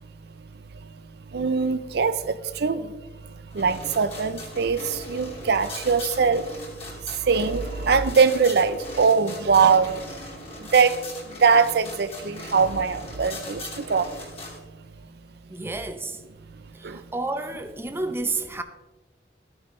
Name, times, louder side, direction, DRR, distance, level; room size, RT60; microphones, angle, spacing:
voice 1, 1.3-2.9 3.5-6.5 7.2-10.0 10.7-11.0 11.4-14.2 16.8-17.0, right 5 dB, 60° right, 0.5 m, -22 dB
sound 1, 3.5-14.6, left 2 dB, 35° left, 2.9 m, -40 dB
voice 2, 15.5-16.2 16.7-18.6, right 2 dB, 15° right, 0.6 m, -30 dB
14.0 x 9.6 x 3.1 m
head